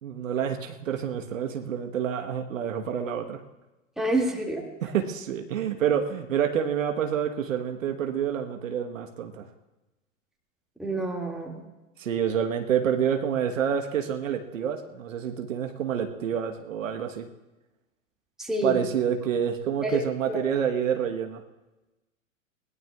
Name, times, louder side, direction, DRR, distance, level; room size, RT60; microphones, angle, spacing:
voice 1, 0.0-3.4 4.8-9.5 12.0-17.3 18.6-21.4, right 8 dB, 70° right, 5 dB, 1.3 m, -28 dB
voice 2, 4.0-4.6 10.8-11.6 18.4-18.8 19.8-20.0 20.3-20.4, right 1 dB, ahead, -1 dB, 2.2 m, -28 dB
20.5 x 18.0 x 2.4 m, 1.1 s
figure-of-eight pair, 100°, 41 cm